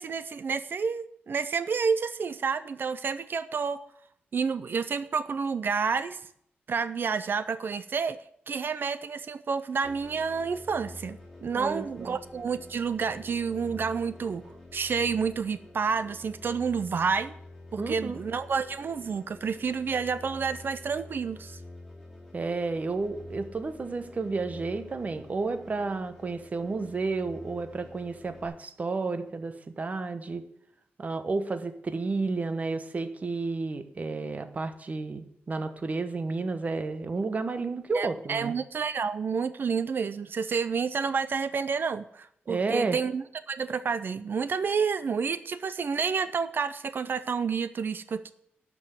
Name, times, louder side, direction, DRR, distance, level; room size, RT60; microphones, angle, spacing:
voice 1, 0.0-3.8 4.3-6.2 6.7-14.4 14.7-17.3 17.7-21.6 37.9-48.3, right 5 dB, 55° right, 13 dB, 0.5 m, -29 dB
sound 1, 9.8-28.5, left 2 dB, ahead, 4.4 m, -47 dB
voice 2, 11.5-12.2 17.8-18.2 22.3-30.4 31.0-38.5 42.5-43.0, right 3 dB, 35° right, 9 dB, 1.0 m, -31 dB
12.0 x 6.2 x 7.9 m, 0.70 s
wide cardioid pair, 140°, 4 cm